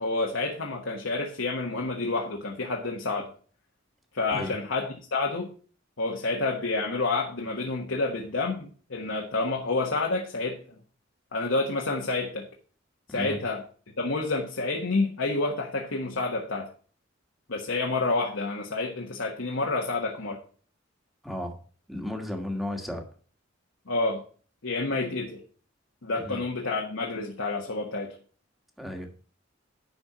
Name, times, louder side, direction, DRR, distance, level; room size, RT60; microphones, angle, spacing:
voice 1, 0.0-3.3 4.1-5.5 6.0-10.8 11.3-12.5 13.1-13.6 14.0-16.7 17.5-20.4 23.9-24.2 24.6-25.4 26.0-28.2, left 3 dB, 75° left, 1.3 m, -29 dB
voice 2, 21.2-21.6 21.9-23.0 26.2-26.4 28.8-29.1, left 1 dB, ahead, 1.6 m, -34 dB
10.5 x 4.4 x 5.8 m
head